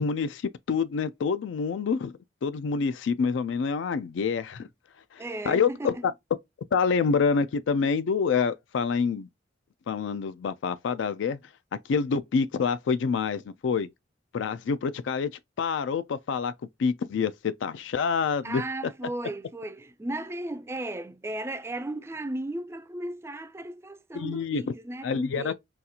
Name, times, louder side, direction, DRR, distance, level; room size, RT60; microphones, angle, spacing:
voice 1, 0.0-2.1 2.4-4.7 5.1-6.1 6.7-9.3 9.9-11.4 11.9-13.9 14.3-15.3 15.6-16.5 16.8-18.6 24.1-24.6 25.0-25.5, left 5 dB, 80° left, 0.4 m, -27 dB
voice 2, 5.2-6.1 18.4-25.5, right 1 dB, 15° right, 0.3 m, -35 dB
4.0 x 2.4 x 2.7 m
head